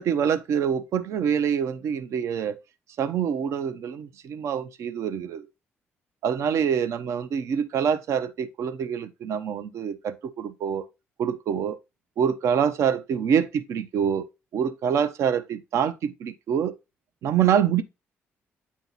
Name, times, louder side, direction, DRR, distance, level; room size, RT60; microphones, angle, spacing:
voice 1, 0.0-2.5 3.0-5.5 6.2-10.8 11.2-11.8 12.2-14.2 14.5-16.7 17.2-17.8, right 8 dB, 70° right, 0.6 m, -25 dB
8.3 x 2.9 x 3.9 m
supercardioid pair, 70°, 5 cm